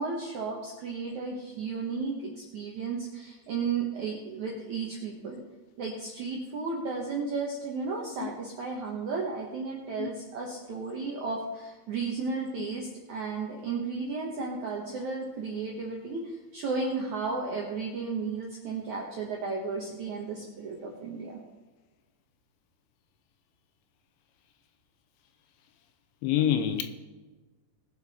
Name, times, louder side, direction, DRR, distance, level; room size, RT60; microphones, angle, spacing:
voice 1, 0.0-5.4 5.8-21.4, right 4 dB, 70° right, 1.8 m, -34 dB
voice 2, 26.2-26.8, left 10 dB, 85° left, 3.0 m, -27 dB
20.0 x 7.2 x 4.2 m
omnidirectional pair, 5.4 m